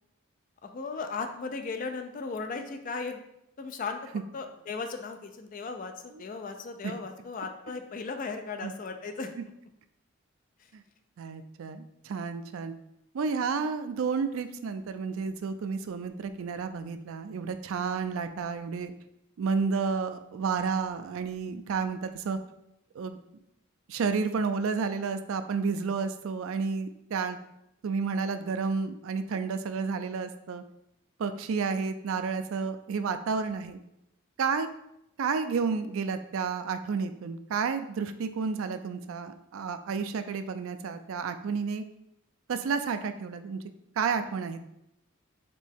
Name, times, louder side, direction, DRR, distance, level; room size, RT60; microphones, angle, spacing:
voice 1, 0.6-3.2 3.6-9.3, left 4 dB, 40° left, 6 dB, 0.3 m, -36 dB
voice 2, 11.2-12.7 13.1-18.9 19.4-22.4 22.9-23.2 23.9-27.4 27.8-30.6 31.2-33.8 34.4-34.7 35.2-41.8 42.5-43.6 44.0-44.6, right 5 dB, 70° right, 10 dB, 0.4 m, -31 dB
4.3 x 3.0 x 3.5 m, 0.82 s
head